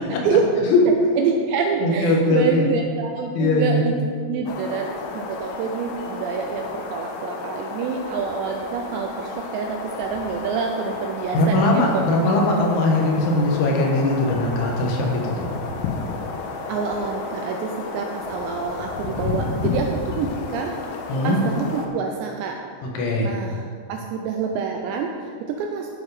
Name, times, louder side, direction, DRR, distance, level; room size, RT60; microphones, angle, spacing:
voice 1, 0.1-0.4 0.9-3.9 4.3-12.0 16.7-21.0 21.2-22.6 23.2-25.9, right 6 dB, 80° right, 2 dB, 2.6 m, -27 dB
voice 2, 1.8-2.6 3.3-3.8 11.3-15.5 21.1-21.4 23.0-23.3, left 2 dB, 75° left, -1 dB, 3.7 m, -20 dB
sound 1, 4.5-21.9, left 4 dB, 90° left, 3.5 m, -32 dB
12.5 x 7.2 x 5.0 m, 2.1 s
omnidirectional pair, 5.7 m